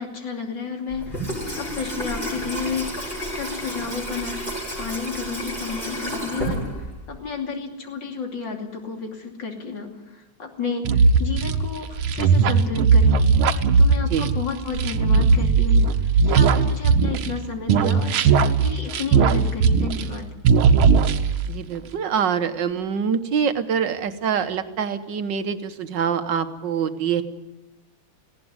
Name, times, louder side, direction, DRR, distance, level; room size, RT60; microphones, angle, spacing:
voice 1, 0.0-4.5 4.8-20.3, left 5 dB, 60° left, 3 dB, 3.5 m, -32 dB
Water tap faucet / Sink (filling or washing), 0.9-7.2, equal, 20° left, 6.6 m, -31 dB
sound 1, 10.8-17.4 17.7-20.2 20.4-21.5, right 5 dB, 90° right, 1.8 m, -18 dB
voice 2, 21.5-27.2, right 7 dB, 65° right, 9 dB, 1.7 m, -25 dB
19.0 x 16.5 x 9.6 m, 0.99 s
omnidirectional pair, 2.2 m